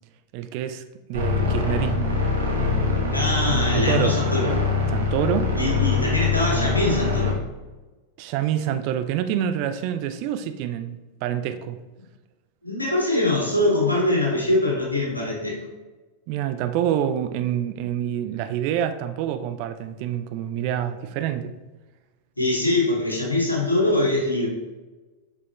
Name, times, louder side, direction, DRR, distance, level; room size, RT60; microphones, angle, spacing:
voice 1, 0.3-3.3 3.7-4.2 4.9-5.5 8.2-11.8 16.3-21.6, right 10 dB, 45° right, 0.5 m, -27 dB
sound 1, 1.1-7.3, left 4 dB, 70° right, 1.7 m, -23 dB
voice 2, 3.1-4.5 5.6-7.4 12.6-15.6 22.4-24.5, left 2 dB, 85° left, 2.4 m, -23 dB
7.2 x 6.2 x 3.2 m
figure-of-eight pair, 90°, 0 cm